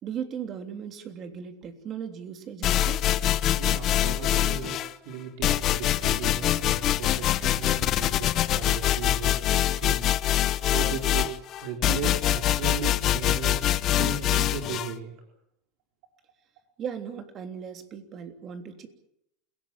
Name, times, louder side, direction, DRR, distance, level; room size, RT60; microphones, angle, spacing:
voice 1, 0.0-3.1 16.8-18.9, right 8 dB, 35° right, 6 dB, 3.3 m, -37 dB
sound 1, 2.6-4.9 5.4-14.9, left 13 dB, 45° left, 1.0 m, -24 dB
voice 2, 3.6-4.8 5.0-10.0 10.7-11.3 11.6-13.7 13.9-15.1, right 6 dB, 70° right, 2 dB, 4.4 m, -36 dB
28.5 x 17.5 x 7.5 m, 0.79 s
supercardioid pair, 135°, 0 cm